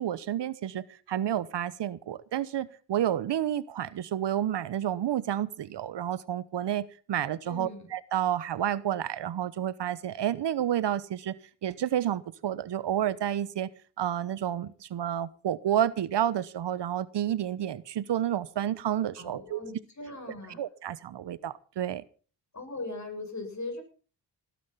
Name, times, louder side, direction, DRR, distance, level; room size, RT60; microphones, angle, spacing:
voice 1, 0.0-11.4 11.6-13.7 14.0-19.6 20.6-22.0, right 11 dB, 60° right, 18 dB, 1.0 m, -30 dB
voice 2, 7.4-7.9 19.2-20.6 22.5-23.8, left 2 dB, 35° left, 6 dB, 7.4 m, -39 dB
18.5 x 10.5 x 5.6 m, 0.40 s
supercardioid pair, 50°, 46 cm